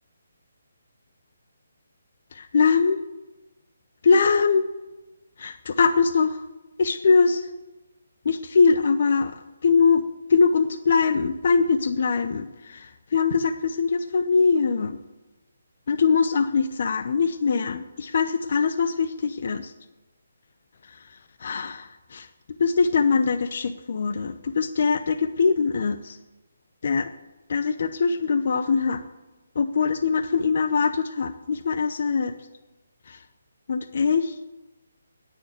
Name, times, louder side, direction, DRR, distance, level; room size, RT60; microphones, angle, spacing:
voice 1, 2.3-3.0 4.0-4.7 5.4-6.4 6.8-7.5 8.2-10.0 10.3-15.0 15.9-19.7 20.9-21.1 21.4-22.3 22.6-26.2 26.8-27.1 27.5-29.0 29.5-32.4 33.1-33.2 33.7-34.4, left 5 dB, 55° left, 11 dB, 0.8 m, -22 dB
10.0 x 9.5 x 8.2 m, 1.1 s
figure-of-eight pair, 150°, 0 cm